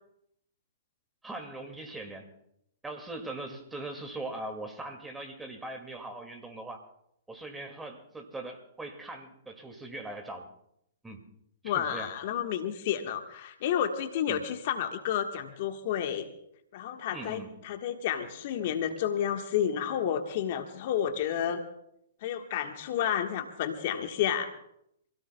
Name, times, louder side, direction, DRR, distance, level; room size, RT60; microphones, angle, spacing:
voice 1, 1.2-2.3 2.8-6.9 7.3-10.5 11.0-11.3 11.6-12.1 14.3-14.4 17.1-17.5, right 2 dB, 10° right, 5 dB, 2.1 m, -40 dB
voice 2, 11.6-16.3 16.7-21.6 22.2-24.5, left 9 dB, 50° left, 6 dB, 1.4 m, -31 dB
27.0 x 16.5 x 2.3 m, 0.75 s
hypercardioid pair, 120°, 0 cm